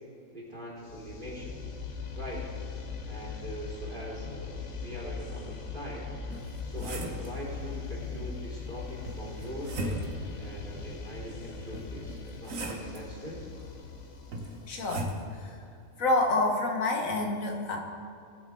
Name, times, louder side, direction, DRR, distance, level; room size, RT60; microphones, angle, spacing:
voice 1, 0.3-1.6 2.2-2.5 3.1-6.1 6.6-10.1 10.4-13.4, equal, 35° right, -7 dB, 3.7 m, -42 dB
sound 1, 0.8-15.6, left 4 dB, 65° left, 1.3 m, -40 dB
sound 2, 6.3-7.3 9.0-10.3 11.7-13.0 14.3-15.2, right 1 dB, 85° right, 1.5 m, -37 dB
voice 2, 14.7-15.6 16.0-17.8, left 2 dB, 85° left, 1 dB, 1.8 m, -28 dB
19.5 x 7.4 x 3.8 m, 2.4 s
omnidirectional pair, 1.4 m